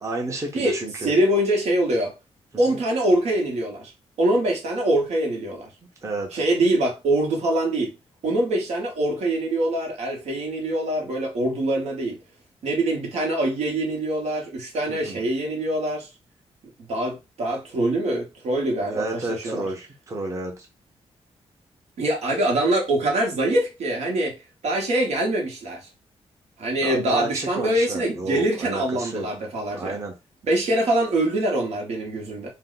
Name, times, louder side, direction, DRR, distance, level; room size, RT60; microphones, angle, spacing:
voice 1, 0.0-1.1 2.7-2.8 6.0-6.4 14.9-15.2 18.9-20.7 26.8-29.3 29.8-30.2, right 2 dB, 25° right, 0.7 m, -31 dB
voice 2, 0.5-2.1 2.6-3.9 4.2-5.7 6.3-7.9 8.2-12.2 12.6-16.1 16.8-19.7 22.0-24.3 24.6-25.9 26.6-30.0 30.4-32.5, right 1 dB, 75° right, 1.0 m, -24 dB
2.7 x 2.2 x 3.8 m
wide cardioid pair, 125°, 11 cm